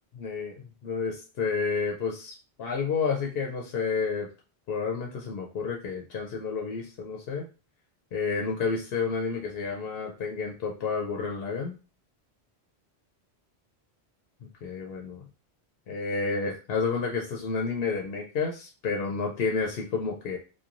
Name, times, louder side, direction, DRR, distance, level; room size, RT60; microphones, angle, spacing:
voice 1, 0.1-4.3 4.7-7.5 8.1-11.8 14.6-15.3 15.9-20.4, left 5 dB, 70° left, 0 dB, 0.8 m, -30 dB
2.9 x 2.2 x 2.4 m, 0.34 s
omnidirectional pair, 1.1 m